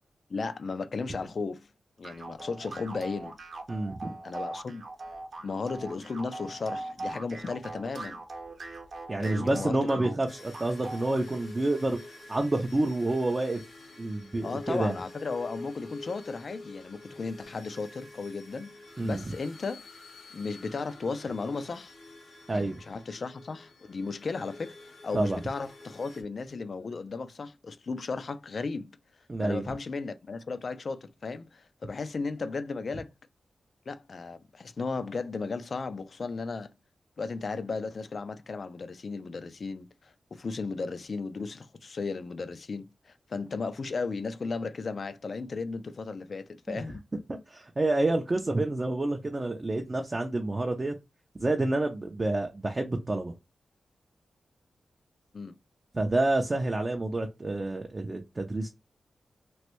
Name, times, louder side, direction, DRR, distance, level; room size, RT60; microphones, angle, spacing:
voice 1, 0.3-1.7 2.0-3.4 4.2-4.8 5.4-8.2 9.2-10.1 14.4-18.8 19.0-19.8 20.3-21.9 22.5-28.9 29.4-33.1 33.9-36.7 37.2-47.0 55.3-55.5, left 4 dB, 45° left, 0.3 m, -35 dB
sound 1, 2.0-11.3, right 2 dB, 50° right, 0.8 m, -41 dB
voice 2, 3.7-4.2 9.1-12.0 12.3-13.6 14.0-15.0 19.0-19.3 22.5-22.8 25.1-25.4 29.3-29.6 46.7-46.8 47.3-50.9 51.4-53.3 55.9-58.7, right 2 dB, 25° right, 0.4 m, -28 dB
sound 2, 10.3-26.2, left 2 dB, 80° left, 1.4 m, -48 dB
3.0 x 2.6 x 3.0 m
wide cardioid pair, 170°, 0 cm